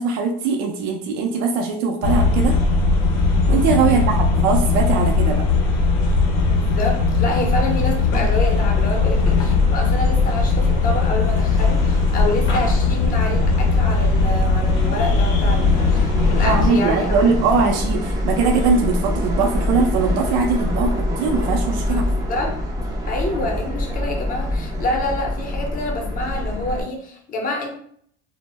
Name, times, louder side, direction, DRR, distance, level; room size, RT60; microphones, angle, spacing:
voice 1, 0.0-2.6 3.5-5.4 16.4-22.1, right 4 dB, 75° right, 1 dB, 0.5 m, -21 dB
sound 1, 2.0-16.7, left 3 dB, 85° left, 0.6 m, -19 dB
voice 2, 6.5-17.3 21.9-22.0 22.3-22.5 23.1-27.7, left 1 dB, 30° left, 1 dB, 0.6 m, -27 dB
Subway metro underground, 8.1-26.8, left 1 dB, 10° right, 0.4 m, -26 dB
2.0 x 2.0 x 3.3 m, 0.63 s
cardioid pair, 120°, 30 cm